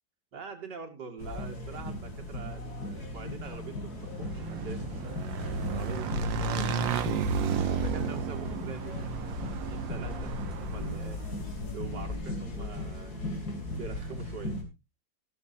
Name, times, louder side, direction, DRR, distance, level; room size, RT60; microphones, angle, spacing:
voice 1, 0.3-5.2 5.7-7.3 7.7-11.2 11.7-13.2 13.8-14.6, right 5 dB, 65° right, 4 dB, 2.9 m, -44 dB
sound 1, 1.2-14.6, left 2 dB, 55° left, 3.3 m, -36 dB
Motorcycle / Engine, 4.0-11.3, right 7 dB, 90° right, 1.7 m, -33 dB
14.5 x 12.5 x 2.8 m, 0.25 s
omnidirectional pair, 2.0 m